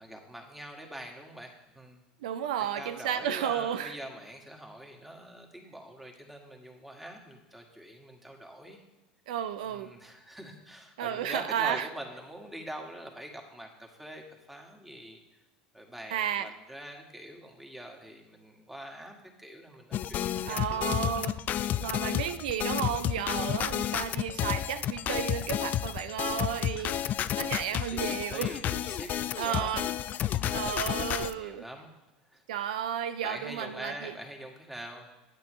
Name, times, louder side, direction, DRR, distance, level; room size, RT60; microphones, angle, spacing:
voice 1, 0.0-2.0 2.8-8.8 9.7-15.2 15.7-21.0 26.8-27.4 27.9-29.1 29.4-29.7 30.2-30.6 31.3-31.9 32.3-32.4 33.2-35.1, right 1 dB, 5° right, 1.8 m, -44 dB
voice 2, 2.2-4.0 9.3-9.9 11.0-11.9 16.1-16.5 20.4-21.4 21.8-27.1 27.4-28.6 29.0-29.9 30.5-31.6 32.5-34.1, right 9 dB, 80° right, 0.4 m, -33 dB
sound 1, 19.9-31.3, left 11 dB, 45° left, 0.4 m, -31 dB
9.5 x 8.4 x 3.2 m
hypercardioid pair, 90°, 4 cm